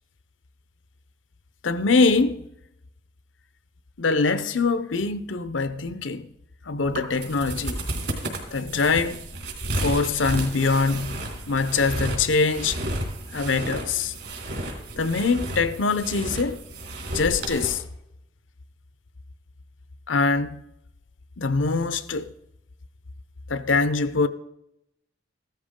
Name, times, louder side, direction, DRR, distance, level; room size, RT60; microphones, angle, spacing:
voice 1, 1.6-2.5 4.0-6.3 6.7-7.8 8.5-9.3 9.8-12.8 13.3-14.1 15.0-16.6 17.1-17.8 20.1-20.6 21.4-22.3 23.5-24.3, left 4 dB, 80° left, 0.7 m, -23 dB
sound 1, 6.8-17.7, right 1 dB, 65° right, 3.1 m, -32 dB
15.0 x 13.0 x 3.7 m
head